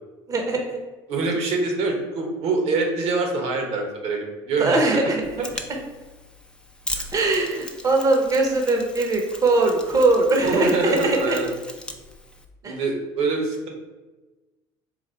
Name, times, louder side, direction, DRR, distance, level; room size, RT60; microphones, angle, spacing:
voice 1, 0.3-0.8 4.6-5.2 5.7-5.8 7.1-11.4 12.6-12.8, right 2 dB, 30° right, 2 dB, 0.8 m, -21 dB
voice 2, 1.1-5.5 6.9-7.0 10.4-11.5 12.6-13.7, right 3 dB, 60° right, 2 dB, 1.0 m, -25 dB
Mechanisms, 5.2-12.5, left 1 dB, 5° left, 0.5 m, -38 dB
4.1 x 2.3 x 4.3 m, 1.2 s
supercardioid pair, 85°, 12 cm